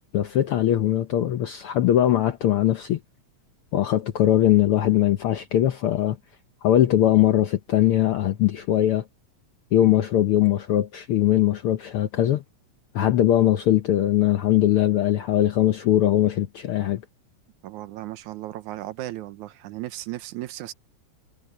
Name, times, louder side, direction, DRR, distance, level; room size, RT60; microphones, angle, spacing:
voice 1, 0.1-3.0 3.7-6.2 6.6-9.0 9.7-12.4 12.9-17.0, left 12 dB, 75° left, 1.3 m, -21 dB
voice 2, 17.6-20.7, right 15 dB, 85° right, 2.3 m, -35 dB
omnidirectional pair, 3.4 m